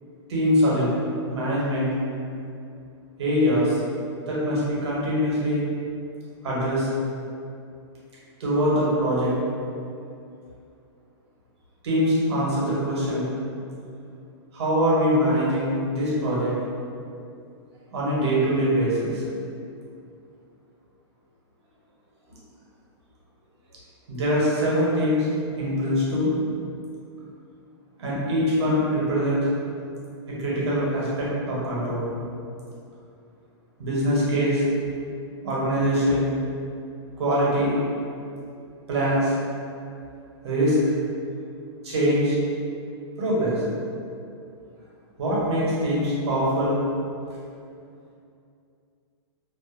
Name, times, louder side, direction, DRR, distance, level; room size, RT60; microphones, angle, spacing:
voice 1, 0.3-0.9 1.3-1.9 3.2-3.8 4.3-5.6 6.4-6.9 8.4-9.3 11.8-13.3 14.5-16.6 17.9-19.2 24.1-25.3 25.6-26.3 28.0-29.5 30.3-32.1 33.8-34.6 35.4-36.3 37.2-37.8 38.9-39.3 40.4-40.8 41.8-42.4 43.2-43.6 45.2-46.8, equal, 65° right, -7 dB, 0.8 m, -23 dB
2.4 x 2.0 x 2.4 m, 2.5 s
hypercardioid pair, 180°, 15 cm